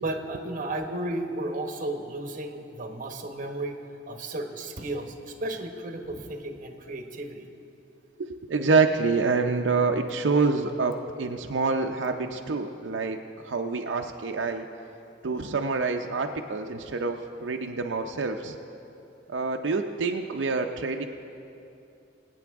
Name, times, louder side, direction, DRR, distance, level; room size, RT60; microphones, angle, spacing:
voice 1, 0.0-3.8 4.1-7.4, right 1 dB, 45° right, 5 dB, 1.0 m, -34 dB
voice 2, 8.2-13.2 13.4-14.7 15.2-18.6 19.3-21.1, right 4 dB, 85° right, 4 dB, 0.6 m, -26 dB
24.5 x 8.7 x 3.5 m, 2.8 s
head